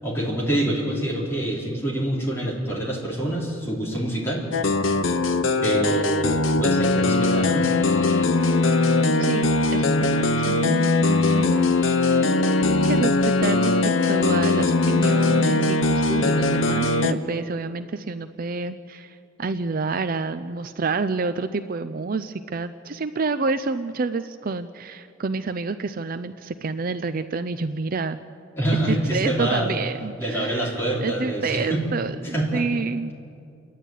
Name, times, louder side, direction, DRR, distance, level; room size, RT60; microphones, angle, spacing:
voice 1, 0.0-4.5 5.6-7.7 28.6-29.7 30.2-31.8 32.3-32.6, right 1 dB, 15° left, -5 dB, 4.5 m, -26 dB
sound 1, 4.5-17.1, left 2 dB, 85° left, 0.9 m, -20 dB
voice 2, 9.2-11.8 12.1-12.4 12.8-28.2 28.9-30.7 31.0-33.1, right 4 dB, 45° right, 11 dB, 0.5 m, -29 dB
28.5 x 11.0 x 9.1 m, 2.4 s
head